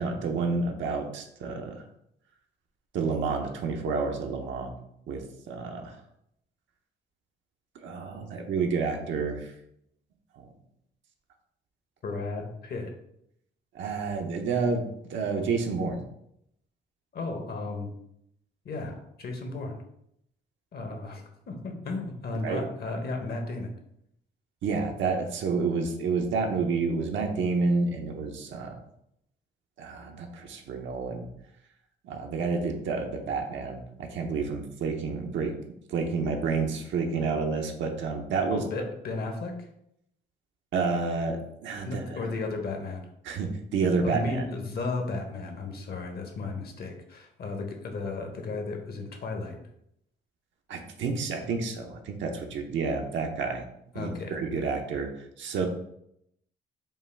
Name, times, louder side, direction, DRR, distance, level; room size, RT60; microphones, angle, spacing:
voice 1, 0.0-1.8 2.9-4.7 5.1-6.0 7.7-9.5 10.4-10.5 13.7-14.8 15.1-16.0 22.4-22.6 24.6-28.8 29.8-31.3 32.0-35.5 35.9-38.6 40.7-42.2 43.2-44.4 50.7-53.6 53.9-55.1 55.4-55.7, right 4 dB, 70° right, 3 dB, 0.7 m, -29 dB
voice 2, 12.0-12.9 17.1-17.9 18.6-19.7 20.7-23.7 38.5-39.7 41.8-43.0 44.0-49.6 53.9-54.3, left 3 dB, 50° left, 4 dB, 0.9 m, -34 dB
5.4 x 2.3 x 3.4 m, 0.76 s
cardioid pair, 90°, 20 cm